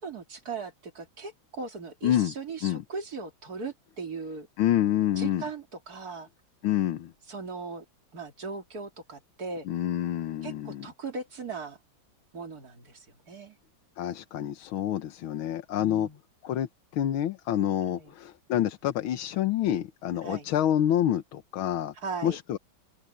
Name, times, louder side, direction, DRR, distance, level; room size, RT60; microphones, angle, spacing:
voice 1, 0.0-4.5 5.2-6.3 7.3-7.8 8.1-9.7 10.4-11.8 12.3-13.6 15.8-16.2 17.8-18.1 20.2-20.5 22.0-22.4, right 4 dB, 50° right, 3.2 m, -38 dB
voice 2, 2.0-2.3 2.6-2.8 4.6-5.5 6.6-7.1 9.7-10.9 14.0-16.1 16.4-21.9 22.2-22.6, left 11 dB, 90° left, 1.8 m, -27 dB
open air
omnidirectional pair, 2.2 m